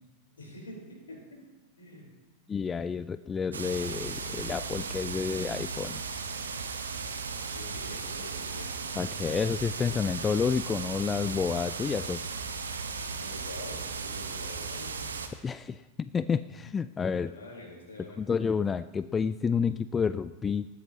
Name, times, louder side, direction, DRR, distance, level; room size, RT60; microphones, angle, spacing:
voice 1, 0.4-1.4 1.8-2.1 7.3-8.7 13.1-15.1 17.2-18.2, left 1 dB, 70° left, -1 dB, 4.1 m, -46 dB
voice 2, 2.5-6.0 9.0-12.3 15.4-17.3 18.2-20.7, left 6 dB, 20° left, 14 dB, 0.3 m, -30 dB
sound 1, 3.5-15.3, right 5 dB, 70° right, 1.1 m, -36 dB
19.5 x 13.5 x 2.9 m, 1.2 s
figure-of-eight pair, 90°, 0 cm